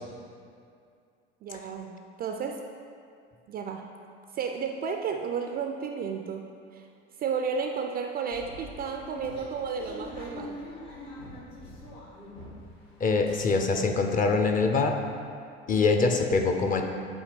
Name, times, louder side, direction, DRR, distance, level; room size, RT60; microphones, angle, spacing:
voice 1, 1.4-2.7 3.5-3.9 4.3-6.9 7.2-10.6, right 6 dB, 25° right, 4 dB, 0.4 m, -33 dB
sound 1, 8.3-12.8 13.1-13.9 14.3-14.4 14.6-14.8, left 1 dB, 60° left, 1.6 m, -44 dB
voice 2, 13.0-15.0 15.7-16.8, left 4 dB, 25° left, 4 dB, 0.6 m, -24 dB
8.1 x 2.8 x 5.9 m, 2.3 s
figure-of-eight pair, 70°, 34 cm